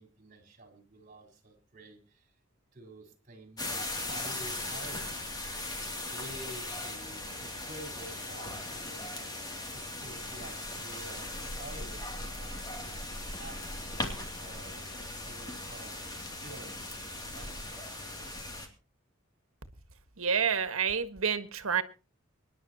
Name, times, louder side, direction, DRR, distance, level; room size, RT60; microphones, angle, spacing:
voice 1, 0.0-2.3 2.7-5.2 6.1-9.3 9.7-16.0 16.4-17.7, right 1 dB, 40° right, 5 dB, 4.3 m, -50 dB
sound 1, 3.6-18.7, left 1 dB, 20° left, 2.7 m, -39 dB
voice 2, 20.2-21.8, right 6 dB, 85° right, 11 dB, 1.6 m, -28 dB
25.5 x 11.0 x 2.9 m, 0.34 s
head